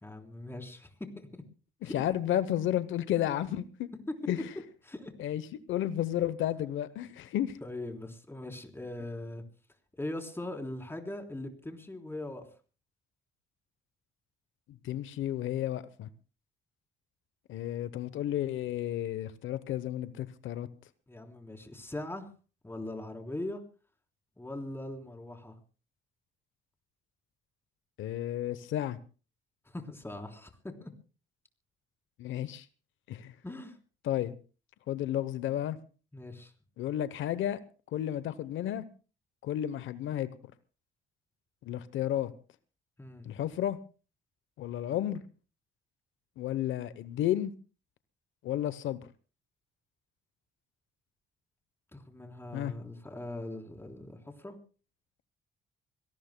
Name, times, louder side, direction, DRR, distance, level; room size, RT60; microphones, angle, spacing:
voice 1, 0.0-0.9 1.3-1.4 1.8-1.9 4.9-5.1 7.6-9.4 10.0-12.5 21.1-22.3 22.6-23.6 24.4-25.6 29.7-30.9 33.4-33.8 36.1-36.5 43.0-43.3 51.9-54.6, left 1 dB, 10° left, 3.6 m, -41 dB
voice 2, 1.8-3.9 4.3-4.5 5.2-5.4 5.7-7.6 14.7-16.1 17.5-20.7 28.0-29.0 32.2-32.7 33.1-33.3 34.0-34.3 34.9-35.8 36.8-37.6 37.9-38.8 39.4-40.3 41.6-42.3 43.2-43.8 44.6-45.2 46.4-47.5 48.4-49.0 52.5-52.7, left 12 dB, 80° left, 0.8 m, -32 dB
25.5 x 18.5 x 2.2 m
cardioid pair, 90°, 20 cm